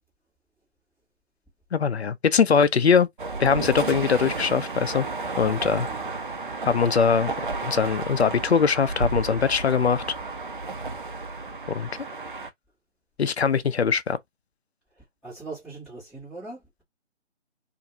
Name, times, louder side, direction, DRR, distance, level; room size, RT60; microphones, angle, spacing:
voice 1, 1.7-3.1 3.4-5.1 5.4-5.9 6.6-7.3 7.6-10.0 11.7-11.9 13.2-14.2, left 6 dB, 60° left, 0.5 m, -21 dB
sound 1, 3.2-12.5, right 3 dB, 45° right, 0.5 m, -32 dB
voice 2, 5.8-6.2 14.9-16.6, right 3 dB, ahead, 1.0 m, -41 dB
2.6 x 2.5 x 2.7 m
figure-of-eight pair, 150°, 37 cm